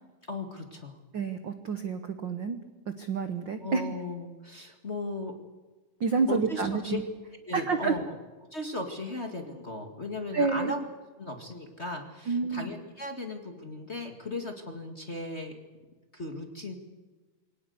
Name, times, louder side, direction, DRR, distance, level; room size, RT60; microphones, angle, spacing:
voice 1, 0.3-1.0 3.6-5.3 6.3-7.0 7.4-8.1 8.5-10.8 11.2-15.6 16.1-16.7, left 2 dB, 25° left, 4 dB, 1.6 m, -36 dB
voice 2, 1.1-2.6 2.9-3.8 6.0-7.0 7.5-7.9 10.3-10.7 12.3-12.7, right 5 dB, 70° right, 9 dB, 1.1 m, -29 dB
23.5 x 18.0 x 8.2 m, 1.3 s
omnidirectional pair, 3.8 m